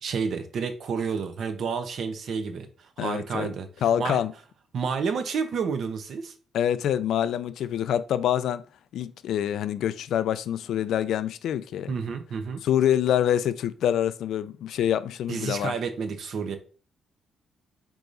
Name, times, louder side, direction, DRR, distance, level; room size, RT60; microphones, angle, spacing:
voice 1, 0.0-3.7 4.0-4.2 4.7-6.3 11.9-12.6 15.3-16.6, right 5 dB, 60° right, 0.7 m, -30 dB
voice 2, 3.0-3.5 3.8-4.3 6.5-8.6 8.9-11.9 12.6-15.7, left 10 dB, 75° left, 0.3 m, -26 dB
4.6 x 3.9 x 2.6 m
cardioid pair, 90°, 0 cm